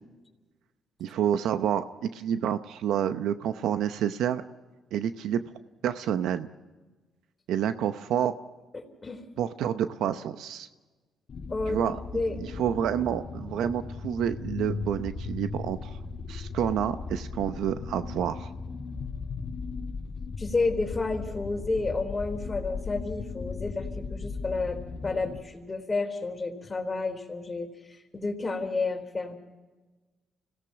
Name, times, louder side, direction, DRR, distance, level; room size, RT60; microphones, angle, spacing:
voice 1, 1.0-4.4 4.9-5.4 5.8-6.5 7.5-8.3 9.4-10.7 11.7-12.0 12.4-16.0 16.3-18.5, right 9 dB, 80° right, 10 dB, 0.7 m, -28 dB
voice 2, 8.7-9.2 11.5-11.8 12.1-12.4 20.4-27.7 28.1-29.4, left 3 dB, 25° left, 4 dB, 3.7 m, -30 dB
sound 1, 11.3-25.4, left 4 dB, 50° left, 2.0 m, -37 dB
26.0 x 17.0 x 5.9 m, 1.2 s
cardioid pair, 90°, 0 cm